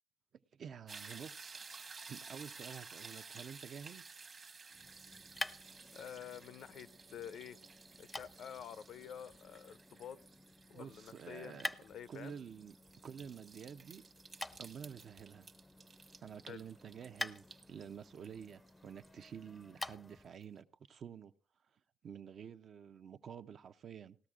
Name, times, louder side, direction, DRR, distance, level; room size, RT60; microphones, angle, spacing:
voice 1, 0.5-1.6 2.1-4.0 10.7-11.7 12.1-14.0 14.6-15.5 16.2-21.3 22.0-24.2, right 7 dB, 60° right, 0.5 m, -50 dB
sound 1, 0.9-19.9 20.4-20.5, right 4 dB, 40° right, 1.1 m, -54 dB
sound 2, 4.7-20.3, left 2 dB, 15° left, 0.4 m, -49 dB
voice 2, 5.9-7.6 8.0-10.2 10.7-12.4 16.5-16.6, left 8 dB, 70° left, 0.5 m, -49 dB
18.5 x 13.0 x 2.4 m
cardioid pair, 90°, 0 cm